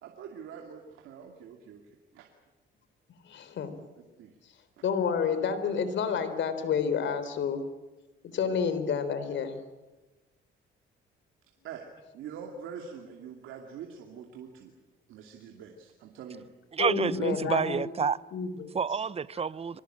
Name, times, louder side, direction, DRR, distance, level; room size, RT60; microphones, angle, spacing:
voice 1, 0.0-1.8 2.1-2.3 4.2-4.3 11.6-11.9 12.1-14.7 15.1-16.5 17.1-17.2, right 7 dB, 85° right, 2.7 m, -44 dB
voice 2, 3.3-3.8 4.8-7.7 8.3-9.6 16.8-17.9 18.3-18.7, left 6 dB, 70° left, 3.7 m, -29 dB
voice 3, 16.7-18.2 18.7-19.8, right 6 dB, 30° right, 0.8 m, -29 dB
25.5 x 19.5 x 8.9 m
cardioid pair, 90°, 20 cm